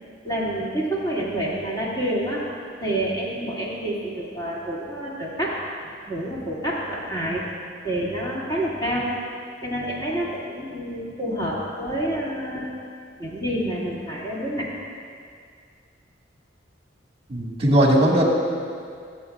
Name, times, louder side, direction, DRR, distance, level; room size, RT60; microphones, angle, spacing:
voice 1, 0.2-2.4 2.8-5.6 6.1-7.4 7.8-9.1 9.6-12.8 13.2-14.7, right 1 dB, 20° left, -7 dB, 2.3 m, -28 dB
voice 2, 17.3-18.2, right 1 dB, 30° right, -2 dB, 1.7 m, -18 dB
23.5 x 7.9 x 2.4 m, 2.3 s
head